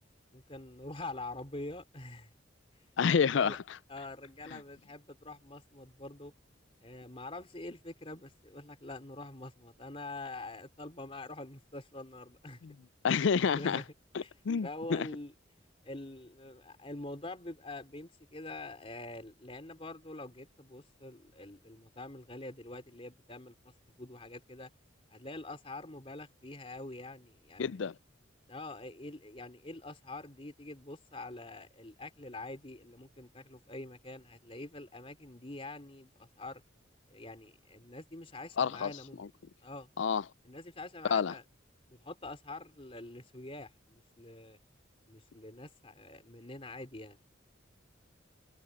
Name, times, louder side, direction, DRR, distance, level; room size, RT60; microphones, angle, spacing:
voice 1, 0.3-2.3 3.1-3.6 3.9-6.3 6.8-12.6 13.4-13.8 14.2-14.3 14.6-15.3 15.8-24.7 25.1-27.9 28.5-36.6 37.1-39.2 39.6-39.9 40.5-41.4 41.9-44.6 45.1-47.2, left 2 dB, 30° left, 3.5 m, -45 dB
voice 2, 3.0-3.6 12.6-12.7 13.0-13.8 14.1-15.1 27.6-27.9 38.6-38.9 39.2-39.3 40.0-40.2 41.1-41.3, left 6 dB, 70° left, 0.4 m, -28 dB
head